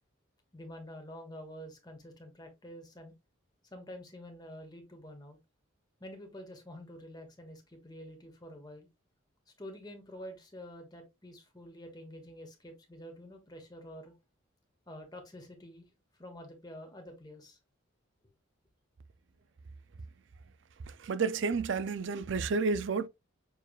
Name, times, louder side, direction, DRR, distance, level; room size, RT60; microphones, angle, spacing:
voice 1, 0.5-3.1 3.7-5.4 6.0-8.9 9.6-14.1 14.9-15.9 16.2-17.6, equal, 20° left, 1.1 m, -48 dB
voice 2, 21.0-23.1, right 4 dB, 60° right, 0.4 m, -30 dB
6.8 x 3.3 x 2.4 m
head